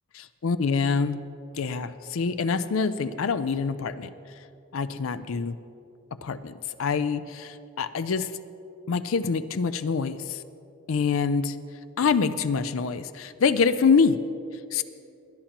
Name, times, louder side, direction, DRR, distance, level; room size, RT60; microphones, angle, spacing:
voice 1, 0.1-1.2 1.6-4.1 4.7-5.6 6.2-8.3 8.9-10.4 10.9-11.6 12.0-14.2 14.7-14.8, left 5 dB, 70° left, 12 dB, 0.4 m, -25 dB
20.0 x 11.5 x 3.0 m, 2.6 s
head